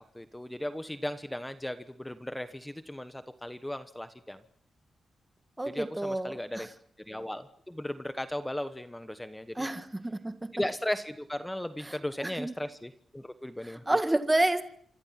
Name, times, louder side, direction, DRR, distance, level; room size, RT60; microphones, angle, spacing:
voice 1, 0.0-4.4 5.6-6.7 7.1-9.7 10.5-14.0, left 1 dB, 10° left, 10 dB, 1.1 m, -36 dB
voice 2, 5.6-6.6 9.6-10.5 12.2-12.5 13.9-14.6, right 1 dB, 15° right, 9 dB, 1.8 m, -29 dB
27.5 x 26.0 x 6.0 m, 0.67 s
cardioid pair, 100°, 0 cm